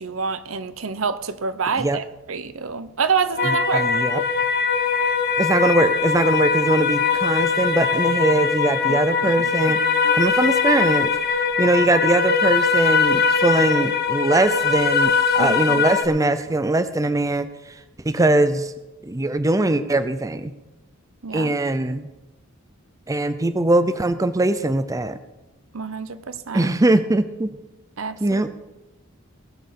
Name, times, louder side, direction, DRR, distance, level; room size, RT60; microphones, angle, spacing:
voice 1, 0.0-3.9 8.9-9.3 10.0-10.2 15.4-15.8 21.2-21.5 25.7-26.7 28.0-28.4, right 5 dB, 70° right, 13 dB, 0.9 m, -27 dB
sound 1, 3.4-16.1, left 5 dB, 50° left, 1.3 m, -21 dB
voice 2, 3.4-4.2 5.4-9.8 10.1-11.1 11.6-17.5 18.0-18.7 19.0-20.5 21.3-22.1 23.1-25.2 26.5-27.5 28.2-28.5, right 2 dB, 15° right, 12 dB, 0.5 m, -21 dB
19.0 x 6.4 x 6.9 m, 1.0 s
head